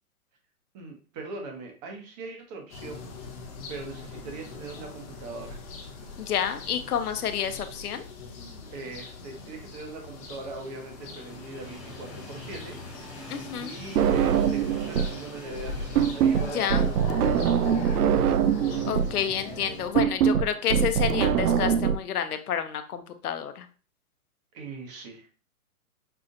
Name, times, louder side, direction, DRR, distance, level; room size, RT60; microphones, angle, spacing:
voice 1, 0.7-3.1 3.7-5.6 8.7-12.8 13.6-18.4 24.5-25.3, right 3 dB, 30° right, 3 dB, 1.0 m, -40 dB
sound 1, 2.7-19.9, left 4 dB, 25° left, 0.8 m, -41 dB
voice 2, 6.2-8.0 13.3-13.7 16.5-16.9 18.9-23.6, left 8 dB, 80° left, 9 dB, 0.8 m, -29 dB
Train, 9.2-19.3 19.8-19.9 21.0-21.1, equal, ahead, 1.0 m, -48 dB
sound 2, 14.0-15.2 15.5-22.0, right 8 dB, 85° right, 0.6 m, -23 dB
5.6 x 2.4 x 2.6 m, 0.37 s
hypercardioid pair, 145°, 44 cm